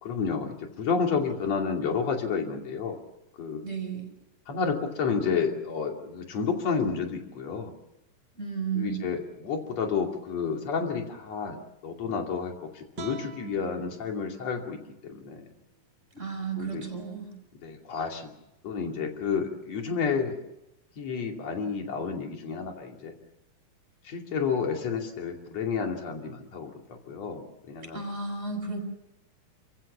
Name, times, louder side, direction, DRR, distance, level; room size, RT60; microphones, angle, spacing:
voice 1, 0.0-3.0 3.4-3.7 4.5-7.8 8.8-11.6 11.8-15.5 16.6-16.8 17.6-18.3 18.6-20.4 21.0-23.1 24.0-28.0, left 5 dB, 50° left, 3 dB, 3.7 m, -30 dB
voice 2, 3.6-4.1 8.4-9.1 16.1-17.3 27.9-28.8, right 5 dB, 20° right, 2 dB, 6.2 m, -33 dB
sound 1, 12.9-16.1, right 4 dB, 55° right, 1.3 m, -46 dB
28.5 x 15.5 x 7.2 m, 0.90 s
omnidirectional pair, 4.0 m